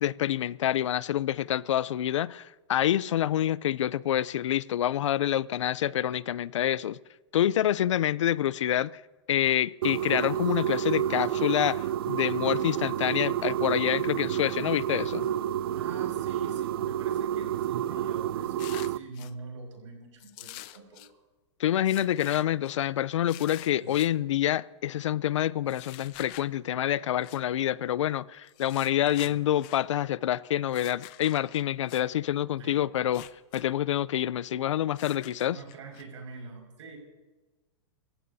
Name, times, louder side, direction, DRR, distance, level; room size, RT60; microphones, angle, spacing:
voice 1, 0.0-7.0 7.3-9.0 9.3-15.3 21.6-33.2 33.5-35.6, left 11 dB, 90° left, 0.5 m, -27 dB
sound 1, 9.8-19.0, right 11 dB, 55° right, 0.4 m, -29 dB
voice 2, 15.7-21.2 23.8-24.0 29.2-29.4 32.6-32.8 35.5-37.0, right 4 dB, 85° right, 5.6 m, -45 dB
sound 2, 18.6-19.3 20.2-21.1 21.8-22.8 23.3-24.1 25.7-26.5 27.2-27.4 28.5-29.8 30.7-32.0 33.0-33.6 33.9-34.0 34.9-36.0, left 17 dB, 25° left, 0.4 m, -46 dB
27.5 x 15.0 x 2.7 m
supercardioid pair, 170°, 15 cm